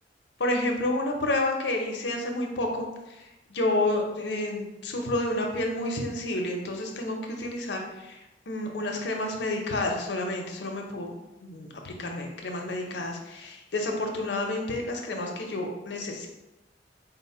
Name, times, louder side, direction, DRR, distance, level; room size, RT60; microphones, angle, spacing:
voice 1, 0.4-2.9 3.2-8.2 8.5-11.1 11.4-16.3, left 2 dB, 70° left, 2 dB, 0.7 m, -30 dB
4.2 x 2.1 x 4.2 m, 0.98 s
head